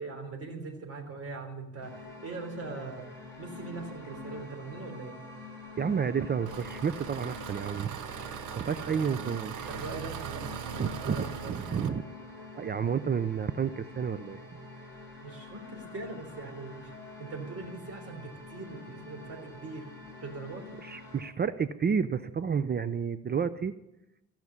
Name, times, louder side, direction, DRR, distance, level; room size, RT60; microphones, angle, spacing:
voice 1, 0.0-3.1 3.4-5.1 8.7-9.2 9.7-11.6 15.2-16.9 17.2-19.9 20.2-20.7, right 3 dB, 50° right, 3 dB, 3.6 m, -41 dB
sound 1, 1.8-21.2, left 2 dB, 10° left, 6.0 m, -46 dB
voice 2, 5.8-9.7 10.8-12.0 12.6-14.4 20.8-23.7, right 6 dB, 35° right, 14 dB, 0.5 m, -31 dB
Engine, 6.5-11.9, right 10 dB, 85° right, 1.0 m, -40 dB
15.5 x 6.0 x 9.7 m, 0.89 s
cardioid pair, 90°, 30 cm